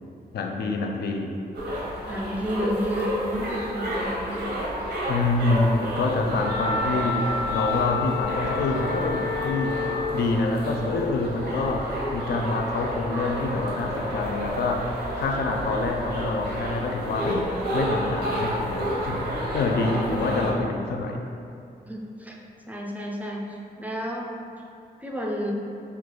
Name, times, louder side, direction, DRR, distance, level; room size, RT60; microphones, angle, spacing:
voice 1, 0.3-1.3 5.1-9.8 10.1-17.5 17.7-19.3 19.5-21.2, left 3 dB, 75° left, 2 dB, 0.4 m, -26 dB
sound 1, 1.5-20.5, right 1 dB, 80° right, 0.7 m, -30 dB
voice 2, 2.1-4.4 6.6-6.7 21.9-22.4 22.7-24.3 25.0-25.5, equal, 10° right, -1 dB, 0.4 m, -31 dB
Wind instrument woodwind instrument, 6.3-10.1, left 4 dB, 35° left, 0.8 m, -30 dB
3.2 x 2.3 x 3.8 m, 2.5 s
wide cardioid pair, 110°, 17 cm